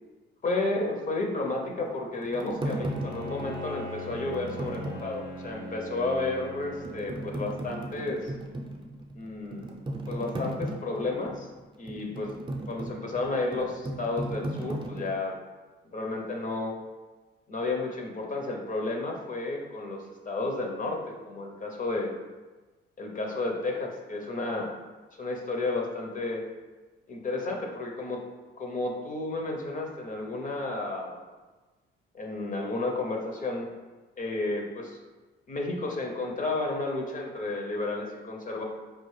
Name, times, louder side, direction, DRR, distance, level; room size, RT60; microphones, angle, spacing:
voice 1, 0.4-8.3 9.1-9.8 10.1-11.5 11.8-12.3 12.7-15.3 15.8-16.8 17.5-22.1 23.0-24.7 25.2-26.4 27.1-28.2 28.6-31.2 32.1-33.7 34.2-35.0 35.5-38.6, left 2 dB, 40° left, 1 dB, 0.7 m, -32 dB
sound 1, 1.6-5.6 6.0-6.1 6.6-15.1, right 1 dB, 25° right, 0.6 m, -37 dB
Bowed string instrument, 2.7-8.1, left 1 dB, 85° left, 1.2 m, -41 dB
4.7 x 2.4 x 3.2 m, 1.2 s
cardioid pair, 90°, 20 cm